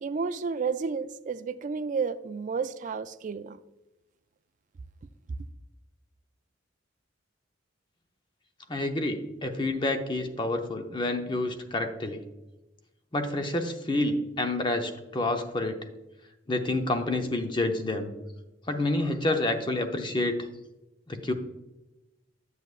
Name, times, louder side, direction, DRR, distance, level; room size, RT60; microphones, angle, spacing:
voice 1, 0.0-3.6, right 5 dB, 40° right, 0.3 m, -31 dB
voice 2, 8.7-12.2 13.1-15.8 16.5-18.1 18.7-20.4 21.1-21.3, left 2 dB, 25° left, 0.7 m, -28 dB
9.7 x 8.0 x 2.4 m
head